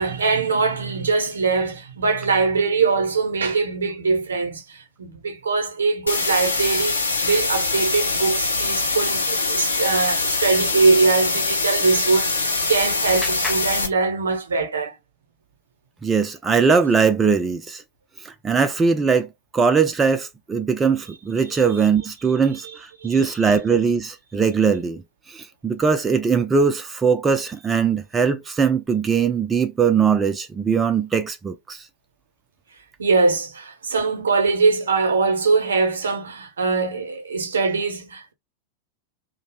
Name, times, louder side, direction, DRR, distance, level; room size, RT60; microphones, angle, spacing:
voice 1, 0.0-15.0 23.0-23.2 33.0-38.3, right 4 dB, 70° right, 0.6 m, -22 dB
sound 1, 6.1-13.9, left 3 dB, 80° left, 0.6 m, -23 dB
Clapping, 12.1-14.7, left 3 dB, 10° left, 0.7 m, -39 dB
voice 2, 16.0-17.8 18.2-25.0 25.3-31.9, right 5 dB, 15° right, 0.3 m, -20 dB
2.6 x 2.0 x 2.9 m
figure-of-eight pair, 90°, 0 cm